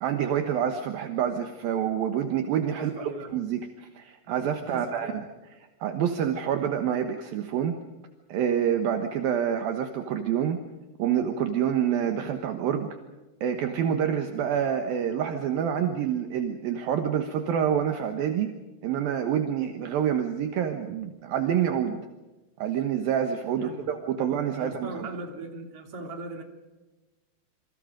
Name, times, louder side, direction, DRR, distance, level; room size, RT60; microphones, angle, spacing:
voice 1, 0.0-5.2 5.8-7.7 8.3-10.6 11.0-12.9 13.4-18.5 18.8-22.0 22.6-25.1, right 9 dB, 70° right, 6 dB, 2.4 m, -27 dB
voice 2, 2.7-3.3 4.5-5.2 23.6-23.9 24.2-24.3 24.6-26.4, right 2 dB, 35° right, 4 dB, 3.3 m, -39 dB
27.5 x 25.0 x 5.2 m, 1.2 s
omnidirectional pair, 5.8 m